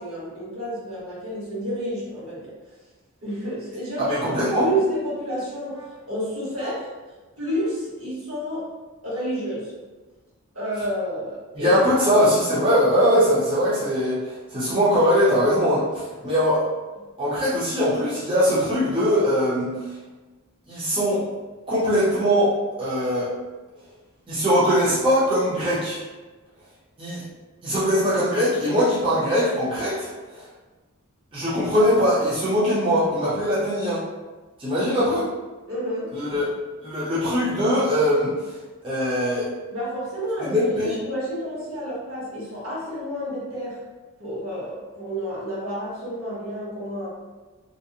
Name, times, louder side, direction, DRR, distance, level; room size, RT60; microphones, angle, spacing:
voice 1, 0.0-2.5 3.2-6.9 7.4-8.6 9.0-9.7 10.5-12.1 35.7-36.1 39.7-43.8 44.2-47.1, equal, 65° right, -8 dB, 1.2 m, -30 dB
voice 2, 4.0-4.7 11.5-16.6 17.2-19.9 20.7-21.2 21.7-23.3 24.3-26.0 27.0-27.2 27.6-30.5 31.3-34.0 34.6-35.3 36.1-36.5 36.8-38.6 38.8-39.5 40.4-40.9, equal, 25° right, -11 dB, 0.6 m, -21 dB
2.5 x 2.0 x 2.7 m, 1.3 s
head